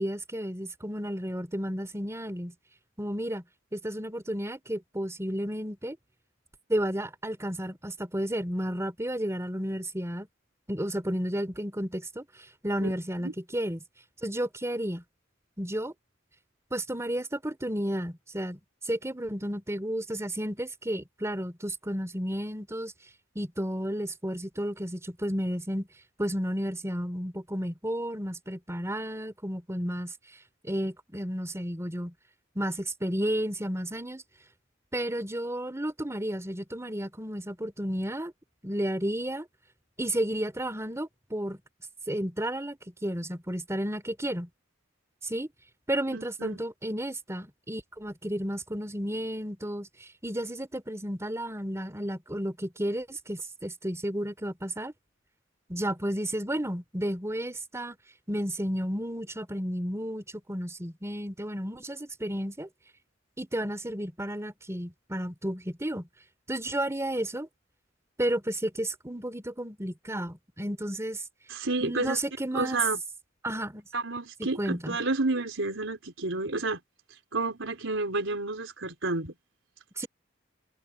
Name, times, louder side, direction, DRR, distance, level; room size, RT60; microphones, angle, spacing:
voice 1, 0.0-2.5 3.0-3.4 3.7-6.0 6.7-10.3 10.7-12.3 12.6-13.8 14.2-15.0 15.6-15.9 16.7-18.6 18.8-22.9 23.4-25.9 26.2-30.1 30.6-32.1 32.6-34.2 34.9-38.3 38.6-39.5 40.0-41.6 42.1-44.5 45.2-45.5 45.9-54.9 55.7-58.0 58.3-62.7 63.4-66.1 66.5-67.5 68.2-71.2 71.8-72.8 73.4-73.8 74.6-75.0 80.0-80.1, right 1 dB, 15° right, 3.7 m, -32 dB
voice 2, 46.1-46.6 71.5-72.2 72.5-73.0 73.9-76.8 77.3-79.3, right 3 dB, 75° right, 4.2 m, -30 dB
head